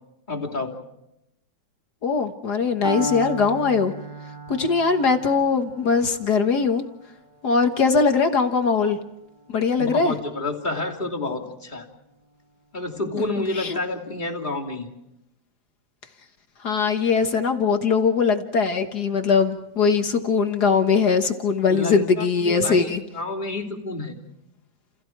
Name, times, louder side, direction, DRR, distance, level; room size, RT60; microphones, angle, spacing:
voice 1, 0.3-0.7 9.8-11.9 12.7-14.9 21.7-24.2, left 2 dB, 15° left, -1 dB, 2.9 m, -29 dB
voice 2, 2.0-3.9 4.5-6.8 7.4-9.0 9.5-10.1 13.6-13.8 16.6-23.0, left 5 dB, 50° left, 7 dB, 1.2 m, -21 dB
Piano, 2.8-10.8, right 1 dB, 30° right, 5.7 m, -36 dB
30.0 x 29.0 x 4.6 m, 0.85 s
omnidirectional pair, 3.4 m